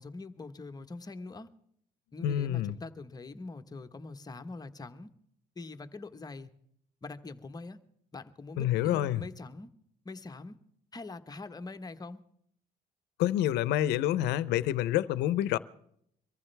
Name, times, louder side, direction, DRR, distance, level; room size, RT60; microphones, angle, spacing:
voice 1, 0.0-1.5 2.1-5.1 5.5-6.5 7.0-7.8 8.1-9.7 10.0-10.5 10.9-12.2, left 3 dB, 25° left, 1.2 m, -43 dB
voice 2, 2.2-2.8 8.6-9.2 13.2-15.6, left 12 dB, 90° left, 0.7 m, -28 dB
23.5 x 14.5 x 3.4 m
cardioid pair, 110°, 17 cm